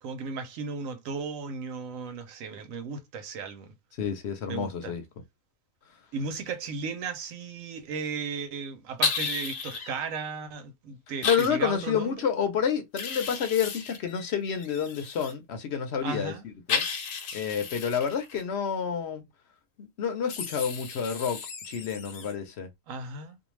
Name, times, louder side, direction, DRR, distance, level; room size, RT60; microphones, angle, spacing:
voice 1, 0.0-3.7 4.5-4.9 6.1-12.3 16.0-16.5 22.9-23.4, right 4 dB, 85° right, 1.0 m, -35 dB
voice 2, 4.0-5.0 11.2-16.3 16.7-16.8 17.3-19.2 19.8-21.4 21.7-22.7, left 7 dB, 60° left, 0.8 m, -29 dB
sound 1, 9.0-9.9 11.2-11.5 13.0-15.3 16.7-18.4 20.3-22.3, left 5 dB, 80° left, 1.1 m, -33 dB
2.6 x 2.2 x 3.1 m
omnidirectional pair, 1.4 m